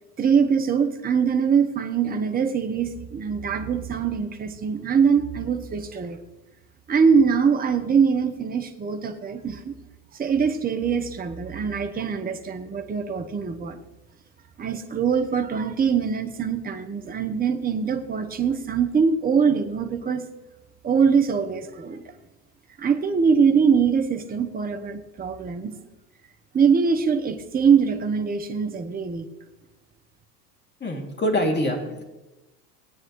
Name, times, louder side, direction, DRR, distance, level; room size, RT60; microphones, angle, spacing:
voice 1, 0.2-6.2 6.9-9.7 10.2-13.8 14.6-20.2 20.8-22.0 22.8-25.7 26.5-29.3, right 6 dB, 20° right, 6 dB, 1.0 m, -23 dB
voice 2, 30.8-32.0, equal, 20° left, 2 dB, 2.8 m, -25 dB
18.5 x 9.3 x 3.2 m, 1.0 s
hypercardioid pair, 85°, 49 cm